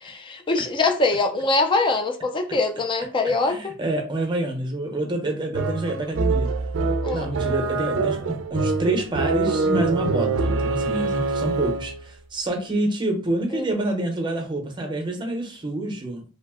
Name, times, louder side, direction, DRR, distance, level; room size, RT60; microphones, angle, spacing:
voice 1, 0.0-3.7 7.0-7.3 13.5-13.7, left 3 dB, 25° left, 0.4 m, -23 dB
voice 2, 3.4-6.5 7.1-16.2, right 1 dB, 25° right, 0.7 m, -27 dB
sound 1, 5.5-12.0, right 3 dB, 85° right, 0.4 m, -24 dB
2.7 x 2.0 x 3.5 m
head